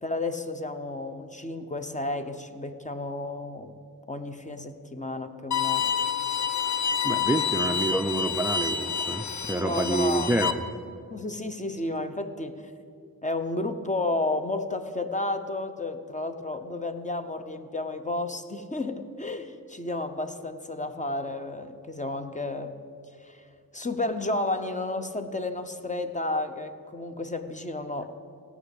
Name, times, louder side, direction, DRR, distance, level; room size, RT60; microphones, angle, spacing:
voice 1, 0.0-3.7 4.1-5.9 9.6-10.3 11.1-12.7 13.2-22.7 23.2-23.5 23.7-28.1, left 2 dB, 20° left, 8 dB, 0.7 m, -32 dB
Bowed string instrument, 5.5-10.5, left 7 dB, 55° left, 0.7 m, -28 dB
voice 2, 7.0-10.6, right 2 dB, 5° right, 8 dB, 0.4 m, -28 dB
16.5 x 6.0 x 8.1 m, 2.4 s
wide cardioid pair, 115°, 34 cm